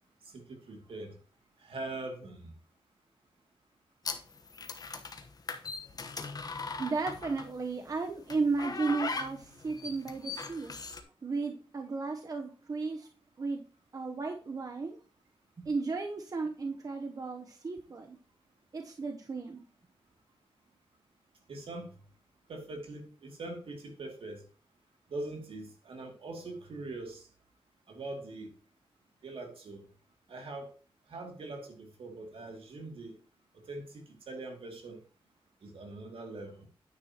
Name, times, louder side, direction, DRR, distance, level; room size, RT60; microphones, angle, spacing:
voice 1, 0.2-1.1 1.6-2.5 21.5-21.9 22.5-24.4 25.1-27.3 27.9-28.6 29.2-29.8 30.3-30.7 31.1-33.2 33.7-35.0 35.6-36.7, right 2 dB, 70° right, 2.5 m, -42 dB
sound 1, 4.0-7.6 8.3-11.0, left 4 dB, 40° left, 1.1 m, -39 dB
voice 2, 6.8-10.7 11.2-13.1 13.4-13.6 13.9-15.0 15.6-18.2 18.7-19.6, right 4 dB, 40° right, 0.8 m, -34 dB
9.6 x 9.5 x 2.9 m
wide cardioid pair, 140°, 10 cm